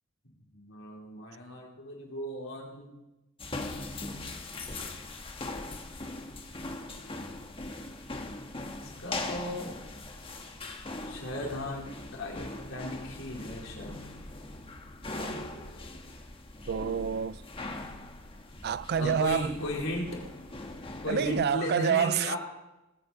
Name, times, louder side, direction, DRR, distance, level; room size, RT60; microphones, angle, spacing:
voice 1, 0.5-3.0 8.8-9.8 11.1-14.0 18.9-20.2 21.0-22.4, left 1 dB, 70° left, 4.4 m, -36 dB
sound 1, 3.4-21.5, left 2 dB, 25° left, 1.5 m, -40 dB
voice 2, 16.7-17.4 18.6-19.5 21.1-22.4, right 7 dB, 50° right, 0.4 m, -28 dB
20.0 x 9.3 x 5.7 m
head